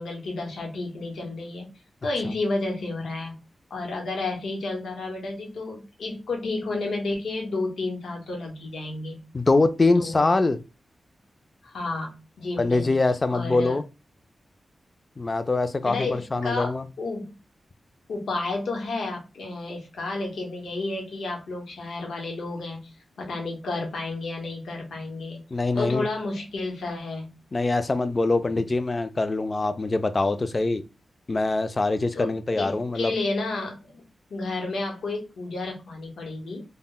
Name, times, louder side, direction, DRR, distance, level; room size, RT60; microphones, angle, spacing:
voice 1, 0.0-1.7 2.0-3.4 3.7-9.2 10.0-10.3 11.6-13.0 13.3-13.8 15.8-17.3 18.1-22.9 23.2-25.4 25.7-27.4 32.1-32.3 32.6-34.0 34.3-36.6, left 2 dB, 90° left, 0.8 m, -31 dB
voice 2, 9.3-10.6 12.6-13.8 15.2-16.9 25.5-26.1 27.5-30.8 31.3-33.1, left 3 dB, 35° left, 0.3 m, -23 dB
2.1 x 2.0 x 3.6 m
wide cardioid pair, 85°, 0 cm